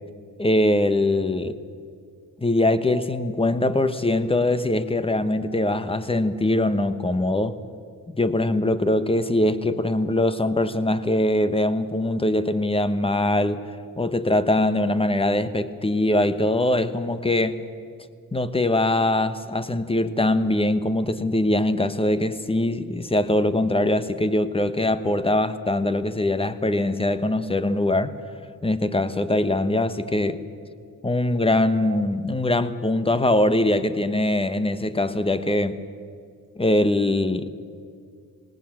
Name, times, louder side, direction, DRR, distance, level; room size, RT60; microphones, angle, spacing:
voice 1, 0.4-1.6 2.4-7.6 8.1-17.6 18.3-28.2 28.6-30.4 31.0-35.8 36.6-37.5, left 1 dB, 15° left, 1.1 m, -22 dB
19.5 x 17.5 x 8.7 m
cardioid pair, 80°, 35 cm